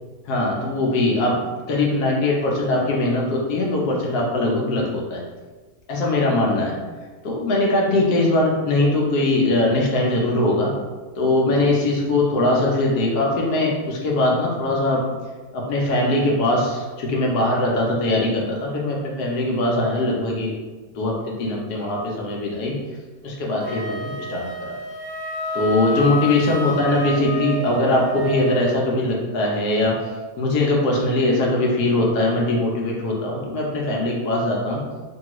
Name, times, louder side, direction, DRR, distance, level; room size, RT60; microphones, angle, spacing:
voice 1, 0.3-1.4 1.7-5.2 5.9-6.7 7.2-10.7 11.2-15.0 15.5-20.5 20.9-22.8 23.2-24.5 25.5-30.1 30.4-34.8, left 2 dB, 75° left, -2 dB, 1.2 m, -21 dB
Wind instrument woodwind instrument, 23.6-28.8, equal, 60° right, 0.5 m, -29 dB
3.2 x 2.3 x 2.9 m, 1.3 s
omnidirectional pair, 1.7 m